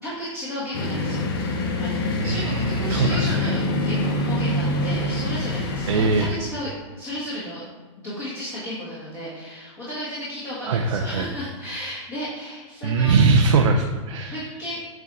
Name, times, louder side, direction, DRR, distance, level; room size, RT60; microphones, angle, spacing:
voice 1, 0.0-7.7 8.0-13.2 14.3-14.8, equal, 20° left, -9 dB, 1.7 m, -33 dB
sound 1, 0.7-6.3, left 2 dB, 45° left, 1.2 m, -25 dB
voice 2, 2.2-3.5 5.9-6.3 10.6-11.3 12.8-14.4, right 4 dB, 90° right, 2 dB, 0.8 m, -21 dB
8.4 x 4.5 x 4.0 m, 1.3 s
supercardioid pair, 165°, 16 cm